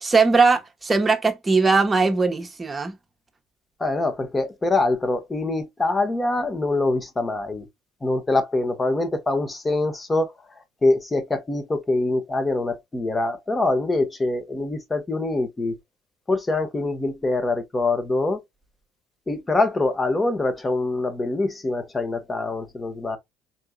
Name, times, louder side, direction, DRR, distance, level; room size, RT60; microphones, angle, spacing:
voice 1, 0.0-3.0, right 4 dB, 20° right, 1.1 m, -20 dB
voice 2, 3.8-7.7 8.0-10.3 10.8-15.7 16.3-18.4 19.3-23.2, left 2 dB, 20° left, 1.1 m, -24 dB
4.1 x 3.5 x 2.3 m
hypercardioid pair, 70°, 0 cm